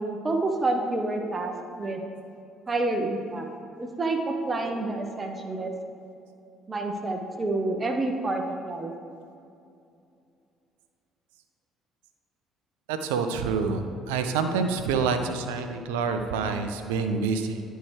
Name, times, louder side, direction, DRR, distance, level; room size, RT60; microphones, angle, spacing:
voice 1, 0.0-2.0 2.7-3.5 3.8-5.7 6.7-8.9, right 2 dB, 30° right, 4 dB, 0.8 m, -28 dB
voice 2, 12.9-17.6, right 5 dB, 75° right, 7 dB, 0.4 m, -27 dB
10.5 x 4.4 x 3.2 m, 2.6 s
figure-of-eight pair, 50°, 0 cm